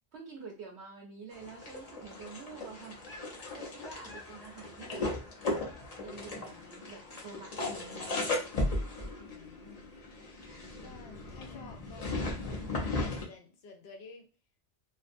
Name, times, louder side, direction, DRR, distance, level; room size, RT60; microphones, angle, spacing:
voice 1, 0.1-5.0 6.0-8.3, right 4 dB, 75° right, 0 dB, 0.8 m, -48 dB
sound 1, 1.3-13.3, left 2 dB, 45° left, 0.6 m, -37 dB
voice 2, 9.2-9.9 10.8-12.3 12.7-14.3, left 4 dB, 70° left, 3 dB, 0.9 m, -52 dB
2.4 x 2.2 x 2.5 m, 0.33 s
omnidirectional pair, 1.1 m